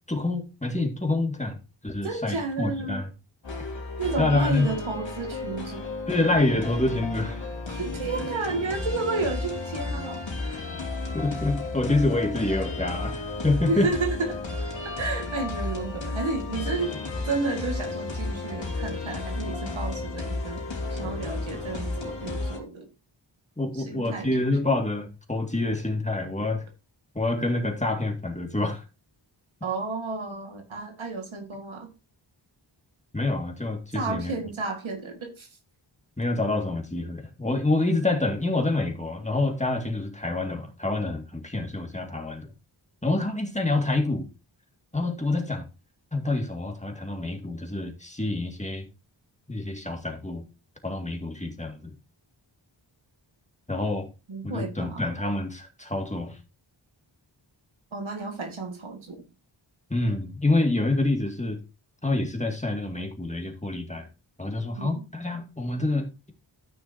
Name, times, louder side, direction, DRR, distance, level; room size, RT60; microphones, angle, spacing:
voice 1, 0.1-1.6 1.8-3.1 4.2-4.7 6.1-7.4 11.1-13.9 23.6-26.7 27.1-28.9 33.1-34.3 36.2-42.5 43.0-44.3 44.9-45.7 46.1-48.9 49.5-50.5 50.8-51.9 53.7-54.1 54.4-56.4 59.9-61.6 62.0-64.1 64.4-66.3, left 2 dB, 15° left, 2.0 m, -27 dB
voice 2, 2.0-3.1 4.0-5.8 7.7-10.6 13.7-14.4 15.0-16.9 17.3-20.6 20.9-22.9 23.8-24.3 29.6-31.9 33.9-35.5 53.9-54.0 54.3-55.1 57.9-59.2 64.8-64.9, right 3 dB, 90° right, 1.9 m, -32 dB
sound 1, 3.4-22.6, left 3 dB, 70° left, 2.7 m, -33 dB
13.0 x 6.1 x 2.8 m
wide cardioid pair, 65°, 46 cm